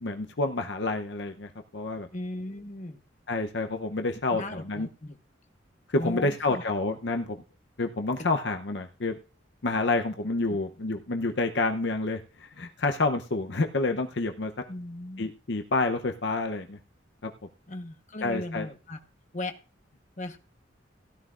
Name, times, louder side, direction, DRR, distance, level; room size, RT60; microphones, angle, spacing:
voice 1, 0.0-2.1 3.3-4.9 5.9-7.4 7.8-9.2 9.6-14.5 15.2-16.8 17.2-17.3 18.2-18.7, left 2 dB, 60° left, 5 dB, 0.7 m, -28 dB
voice 2, 2.1-3.0 4.3-5.2 5.9-6.6 14.7-15.3 17.7-19.0 19.3-19.5 20.2-20.4, left 1 dB, 40° left, 5 dB, 1.2 m, -37 dB
16.5 x 11.0 x 2.5 m, 0.35 s
head